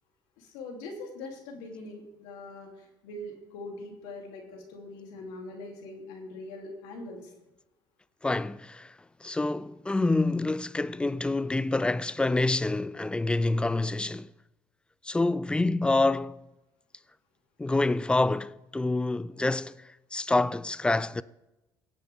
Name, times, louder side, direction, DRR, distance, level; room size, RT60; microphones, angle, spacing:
voice 1, 0.4-7.3, left 2 dB, 90° left, 2.9 m, -42 dB
voice 2, 8.2-8.9 9.2-14.3 15.0-16.4 17.6-19.7 20.1-21.2, left 2 dB, 10° left, 0.4 m, -27 dB
17.5 x 8.2 x 3.5 m
supercardioid pair, 95°, 10 cm